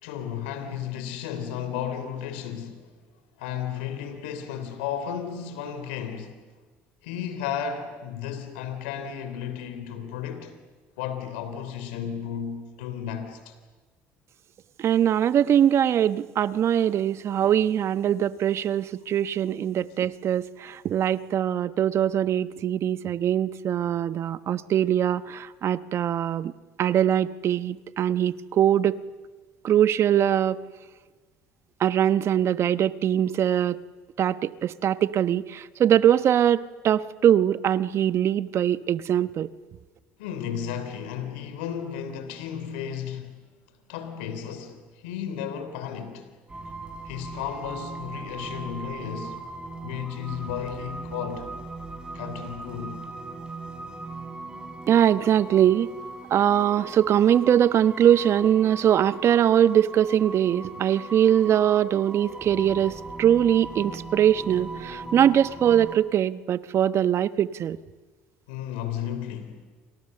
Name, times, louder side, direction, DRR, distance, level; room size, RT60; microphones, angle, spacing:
voice 1, 0.0-2.9 3.4-6.5 7.0-10.6 11.0-13.5 40.2-43.6 43.9-46.3 47.1-49.5 49.8-51.5 52.1-53.1 68.5-69.7, left 8 dB, 85° left, 3.4 m, -34 dB
voice 2, 14.8-26.5 26.8-29.0 29.6-30.6 31.8-33.8 34.2-39.5 54.9-55.9 56.3-67.8, right 10 dB, 55° right, 1.1 m, -22 dB
sound 1, 46.5-66.0, right 2 dB, 15° right, 7.2 m, -39 dB
29.5 x 27.0 x 6.8 m
supercardioid pair, 75°, 6 cm